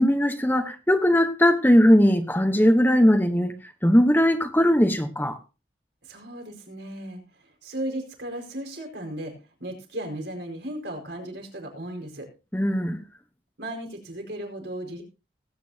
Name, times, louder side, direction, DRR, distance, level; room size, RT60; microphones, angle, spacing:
voice 1, 0.0-3.5 3.8-5.4 12.5-13.0, equal, 10° left, 1.0 m, -19 dB
voice 2, 6.0-9.3 9.6-12.3 13.6-15.0, right 1 dB, 75° right, 4.8 m, -36 dB
19.5 x 9.4 x 2.8 m
head